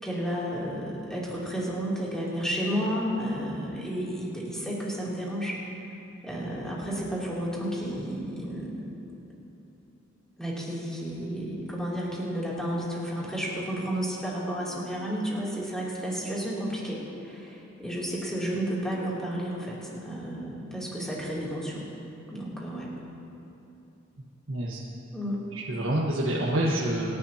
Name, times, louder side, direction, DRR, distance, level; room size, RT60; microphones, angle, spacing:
voice 1, 0.0-5.6 6.2-8.9 10.4-21.9 22.3-22.9 25.1-25.4, equal, 5° left, -7 dB, 2.9 m, -32 dB
voice 2, 24.5-24.8 25.5-27.2, right 1 dB, 85° right, -5 dB, 1.4 m, -27 dB
26.5 x 11.0 x 2.9 m, 3.0 s
head